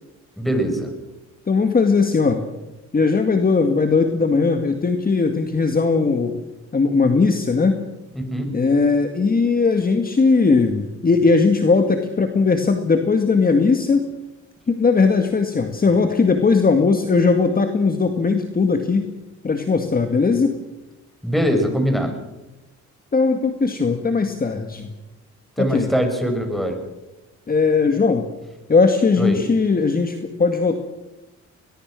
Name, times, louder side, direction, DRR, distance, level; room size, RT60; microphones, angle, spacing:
voice 1, 0.4-0.9 8.1-8.6 21.2-22.2 25.6-26.8 29.2-29.4, equal, ahead, 5 dB, 6.0 m, -22 dB
voice 2, 1.5-2.4 2.9-6.4 6.7-7.8 8.5-14.1 14.7-19.1 19.4-20.6 23.1-24.9 25.6-25.9 27.5-28.3 28.7-30.7, left 4 dB, 30° left, 6 dB, 1.9 m, -18 dB
21.5 x 21.5 x 6.3 m, 1.0 s
cardioid pair, 90°, 30 cm